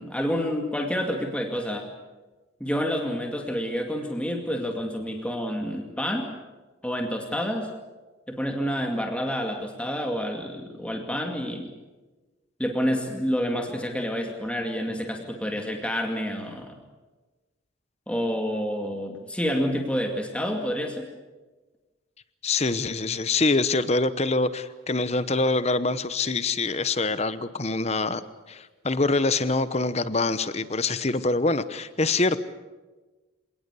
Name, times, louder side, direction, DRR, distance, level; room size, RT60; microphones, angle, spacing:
voice 1, 0.0-1.9 2.6-6.3 6.8-7.7 8.3-11.7 12.6-16.8 18.1-21.1, equal, 5° left, 3 dB, 2.2 m, -28 dB
voice 2, 22.4-28.2 28.5-32.4, left 3 dB, 30° left, 14 dB, 1.0 m, -25 dB
26.5 x 19.0 x 8.4 m, 1.2 s
head